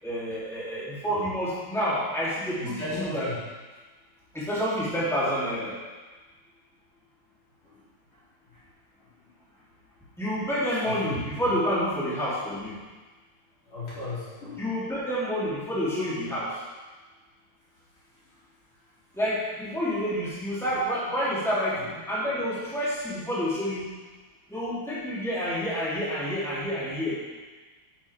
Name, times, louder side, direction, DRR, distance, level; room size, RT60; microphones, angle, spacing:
voice 1, 0.0-3.3 4.3-5.8 10.2-12.8 14.6-16.5 19.2-23.8 24.5-27.2, equal, ahead, -10 dB, 3.2 m, -28 dB
voice 2, 2.6-3.4 7.6-7.8 8.1-8.2 8.5-8.6 9.0-9.3 10.7-11.3 13.7-14.7 18.2-18.3 21.7-21.9, left 2 dB, 75° left, -11 dB, 4.8 m, -37 dB
10.5 x 8.8 x 3.6 m, 1.3 s
omnidirectional pair, 2.3 m